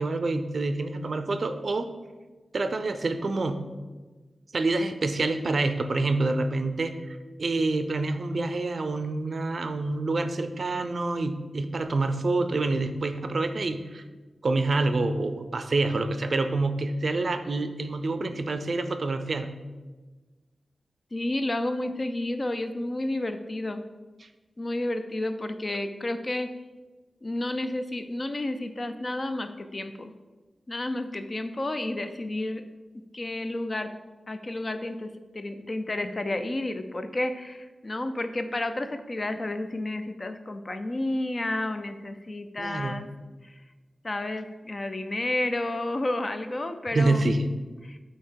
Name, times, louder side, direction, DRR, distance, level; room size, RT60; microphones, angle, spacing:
voice 1, 0.0-1.9 2.5-3.6 4.5-7.0 7.4-14.0 14.4-19.5 42.6-43.0 46.9-47.5, right 2 dB, 55° right, 9 dB, 0.4 m, -27 dB
voice 2, 21.1-23.8 24.6-26.5 27.2-30.1 30.7-32.6 32.9-33.9 34.3-43.1 43.4-43.5 44.0-47.3 47.8-48.0, left 1 dB, 35° left, 8 dB, 0.4 m, -31 dB
8.3 x 2.9 x 4.5 m, 1.3 s
wide cardioid pair, 110°, 0 cm